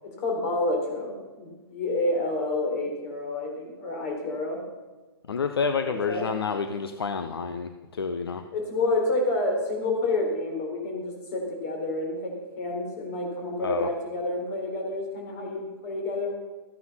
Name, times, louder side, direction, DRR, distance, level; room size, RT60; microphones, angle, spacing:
voice 1, 0.0-4.6 5.8-6.3 8.5-16.3, left 2 dB, 40° left, 1 dB, 4.1 m, -29 dB
voice 2, 5.3-8.4 13.6-13.9, left 5 dB, 70° left, 8 dB, 0.8 m, -29 dB
14.0 x 9.5 x 5.7 m, 1.2 s
figure-of-eight pair, 115°, 13 cm